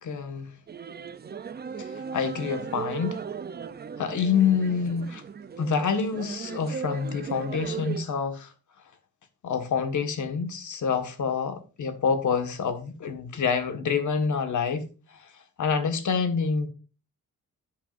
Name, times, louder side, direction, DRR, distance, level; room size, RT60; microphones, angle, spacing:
voice 1, 0.0-0.5 1.8-3.2 4.0-5.2 5.6-8.5 9.4-14.9 15.1-15.3 15.6-16.7, left 6 dB, 55° left, 1.6 m, -27 dB
sound 1, 0.7-8.0, right 6 dB, 30° right, 0.5 m, -37 dB
13.5 x 8.5 x 2.6 m
wide cardioid pair, 150°, 35 cm